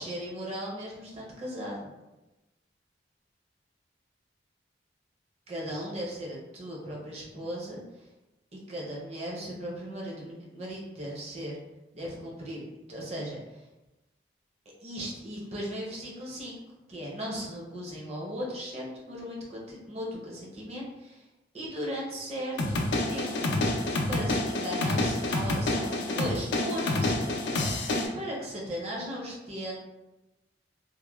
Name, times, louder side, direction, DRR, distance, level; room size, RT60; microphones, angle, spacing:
voice 1, 0.0-1.9 5.5-8.1 8.5-11.6 11.9-12.6 12.9-13.6 14.8-16.6 16.9-21.2 21.5-23.4 24.1-29.8, equal, 35° right, -3 dB, 0.6 m, -37 dB
sound 1, 22.6-28.1, left 2 dB, 75° left, 0.4 m, -28 dB
3.0 x 2.1 x 2.3 m, 1.0 s
head